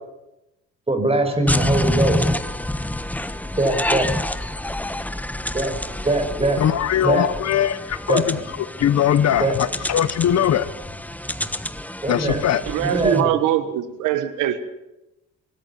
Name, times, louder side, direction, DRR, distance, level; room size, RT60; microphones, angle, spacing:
voice 1, 0.9-2.3 3.6-4.1 5.5-5.7 6.0-6.6 7.0-7.3 8.1-8.4 9.4-9.5 12.0-12.4 12.8-13.3, right 2 dB, 20° right, 5.9 m, -21 dB
sound 1, 1.5-13.2, left 1 dB, 5° left, 1.1 m, -27 dB
voice 2, 6.6-10.7 12.1-12.6, left 10 dB, 60° left, 1.0 m, -21 dB
voice 3, 12.7-14.6, right 11 dB, 90° right, 1.4 m, -22 dB
24.5 x 13.5 x 8.6 m
cardioid pair, 90°, 30 cm